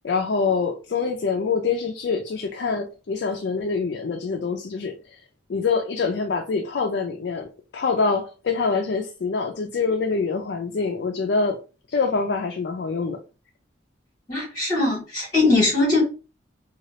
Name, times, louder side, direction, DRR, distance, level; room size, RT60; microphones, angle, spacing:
voice 1, 0.0-5.0 5.5-11.6 11.9-13.2, left 4 dB, 60° left, 0.4 m, -25 dB
voice 2, 14.3-16.0, left 2 dB, 20° left, 1.6 m, -21 dB
3.0 x 2.3 x 2.8 m
head